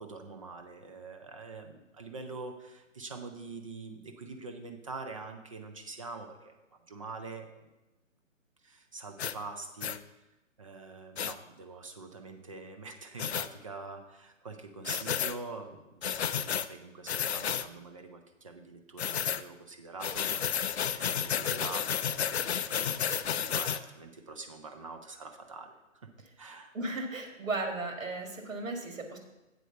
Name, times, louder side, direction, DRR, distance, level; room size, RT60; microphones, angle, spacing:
voice 1, 0.0-6.5 6.9-7.5 8.6-10.0 10.6-25.7 26.0-26.1 26.4-26.7, right 3 dB, 25° right, 5 dB, 0.5 m, -45 dB
sound 1, 9.2-9.4 9.8-10.0 11.2-11.3 13.2-13.5 14.8-15.4 16.0-16.7 17.1-17.7 19.0-19.4 20.0-23.8, left 8 dB, 55° left, 0.4 m, -31 dB
voice 2, 26.7-29.2, right 2 dB, 75° right, 4 dB, 2.0 m, -35 dB
8.0 x 4.9 x 6.6 m, 1.0 s
figure-of-eight pair, 140°, 40 cm